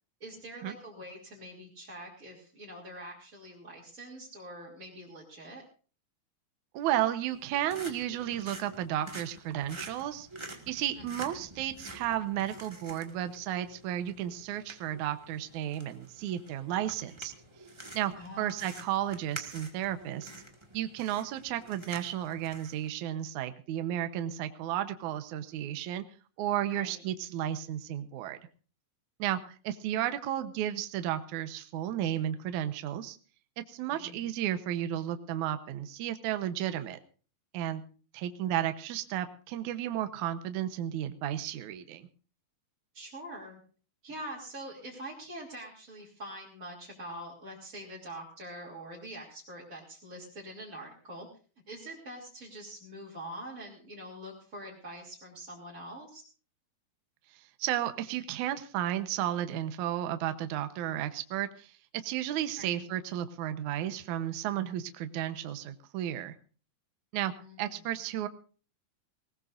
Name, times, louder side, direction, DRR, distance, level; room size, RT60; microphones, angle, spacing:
voice 1, 0.2-5.6 11.0-11.1 18.2-18.8 26.6-27.0 33.9-34.3 42.9-43.6 44.0-51.3 51.7-56.2 62.6-62.9 67.4-67.6, right 1 dB, 25° right, -5 dB, 3.2 m, -44 dB
voice 2, 6.7-10.3 10.7-17.3 17.9-20.3 20.7-26.0 26.4-28.4 29.2-29.4 29.6-33.2 33.7-37.0 37.5-37.8 38.1-42.1 57.6-61.7 62.0-66.3 67.1-67.3 67.6-68.3, right 12 dB, 70° right, 9 dB, 2.1 m, -33 dB
sound 1, 7.3-22.9, right 1 dB, 45° right, 0.3 m, -48 dB
20.0 x 19.0 x 2.6 m, 0.38 s
omnidirectional pair, 4.2 m